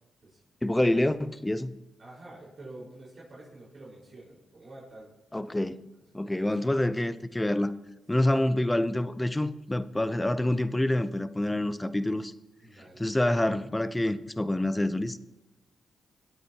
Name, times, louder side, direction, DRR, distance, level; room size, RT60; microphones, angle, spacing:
voice 1, 0.6-1.8 5.3-5.9 6.1-7.7 8.1-12.3 13.0-15.2, left 1 dB, 15° left, 0.7 m, -27 dB
voice 2, 2.0-5.1 12.6-13.1, right 2 dB, 55° right, 4.8 m, -48 dB
22.5 x 9.2 x 2.9 m
supercardioid pair, 55°, 0 cm